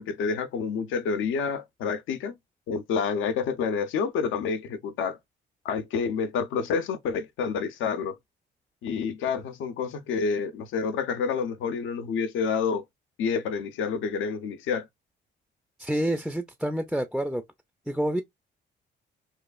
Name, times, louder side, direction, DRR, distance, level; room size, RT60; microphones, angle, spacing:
voice 1, 0.0-2.3 2.7-5.2 5.6-8.2 8.8-12.8 13.2-14.9, left 5 dB, 80° left, 0.6 m, -28 dB
voice 2, 15.8-17.4 17.9-18.2, right 1 dB, ahead, 0.4 m, -28 dB
3.0 x 2.3 x 2.3 m
cardioid pair, 90°, 20 cm